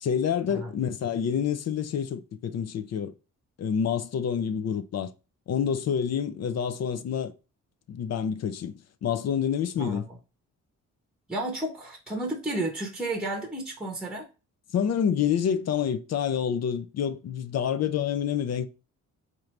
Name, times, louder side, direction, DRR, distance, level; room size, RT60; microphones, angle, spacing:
voice 1, 0.0-3.1 3.6-5.1 5.5-7.3 7.9-10.1 14.7-18.7, left 8 dB, 55° left, 0.5 m, -28 dB
voice 2, 11.3-14.3, right 1 dB, 5° right, 0.9 m, -32 dB
4.5 x 2.6 x 3.1 m
wide cardioid pair, 155°, 32 cm